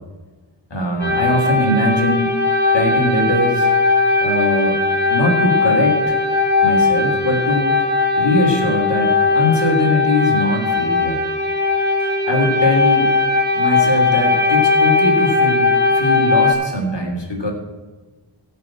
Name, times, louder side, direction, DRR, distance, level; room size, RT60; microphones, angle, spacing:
voice 1, 0.7-2.3 2.7-3.7 4.2-4.8 5.1-6.2 6.6-7.7 8.2-11.2 12.0-13.1 13.5-15.7 15.9-17.5, left 1 dB, 55° left, 1 dB, 3.3 m, -21 dB
sound 1, 1.0-16.5, left 3 dB, 20° left, 4.9 m, -18 dB
15.5 x 5.8 x 7.6 m, 1.3 s
wide cardioid pair, 55°, 50 cm